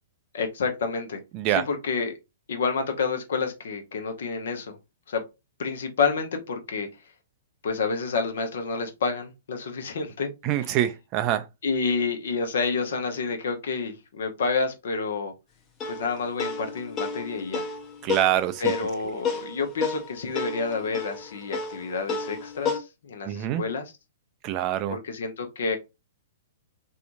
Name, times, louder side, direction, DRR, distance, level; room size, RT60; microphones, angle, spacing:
voice 1, 0.3-1.2 1.5-2.1 2.5-4.8 5.1-5.2 5.6-6.9 7.6-10.3 11.6-15.3 15.9-17.7 18.6-23.9 24.9-25.8, left 4 dB, 65° left, 0.8 m, -29 dB
voice 2, 1.3-1.7 10.4-11.5 18.0-18.7 23.3-23.6 24.4-25.0, right 12 dB, 35° right, 0.3 m, -25 dB
sound 1, 15.8-22.8, left 5 dB, 25° left, 0.7 m, -31 dB
2.8 x 2.3 x 2.5 m
hypercardioid pair, 115°, 0 cm